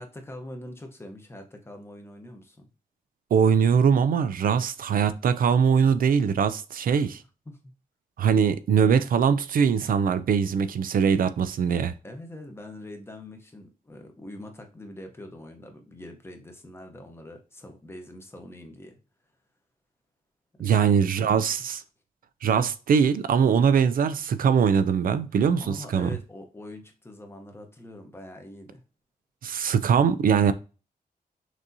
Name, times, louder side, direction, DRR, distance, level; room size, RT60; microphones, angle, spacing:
voice 1, 0.0-2.6 7.5-7.7 12.0-19.0 20.6-20.9 25.3-28.8, left 1 dB, 15° left, 0.8 m, -43 dB
voice 2, 3.3-7.2 8.2-11.9 20.6-21.8 22.4-26.1 29.4-30.5, right 7 dB, 70° right, 0.4 m, -22 dB
6.0 x 2.7 x 2.7 m
wide cardioid pair, 150°, 15 cm